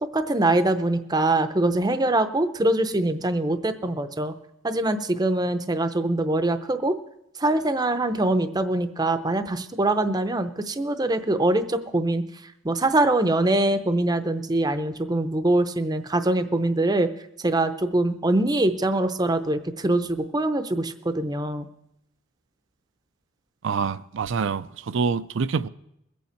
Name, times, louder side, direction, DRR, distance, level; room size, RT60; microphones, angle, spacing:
voice 1, 0.0-4.3 4.6-6.9 7.4-12.2 12.6-17.1 17.4-21.7, right 2 dB, 20° right, 0.6 m, -23 dB
voice 2, 23.6-25.7, right 5 dB, 60° right, 0.5 m, -26 dB
22.0 x 8.5 x 4.4 m
head